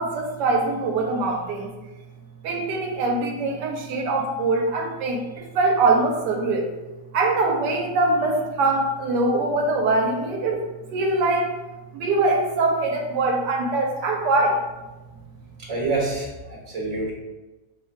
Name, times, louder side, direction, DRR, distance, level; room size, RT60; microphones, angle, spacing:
voice 1, 0.0-1.7 2.4-6.7 7.1-11.5 11.9-14.6, right 2 dB, 80° right, 2 dB, 1.2 m, -23 dB
voice 2, 15.7-17.1, right 3 dB, 25° right, -4 dB, 1.0 m, -27 dB
4.4 x 2.1 x 4.6 m, 1.1 s
omnidirectional pair, 1.8 m